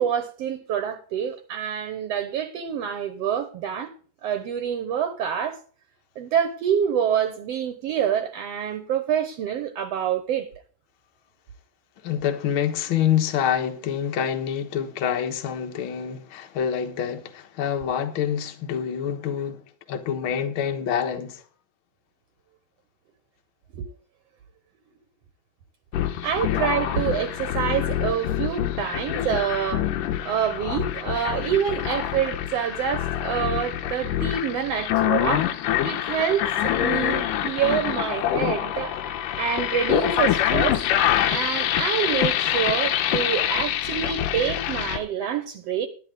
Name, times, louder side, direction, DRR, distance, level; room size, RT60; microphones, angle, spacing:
voice 1, 0.0-3.9 4.2-5.6 6.2-10.5 23.7-23.9 26.2-29.9 30.2-35.5 35.8-39.0 39.4-40.8 41.3-45.9, right 8 dB, 65° right, 1.7 m, -26 dB
voice 2, 12.0-19.6 19.9-21.4, left 9 dB, 50° left, 1.7 m, -26 dB
sound 1, 25.9-45.0, left 11 dB, 90° left, 2.5 m, -25 dB
11.5 x 10.5 x 3.8 m
omnidirectional pair, 3.7 m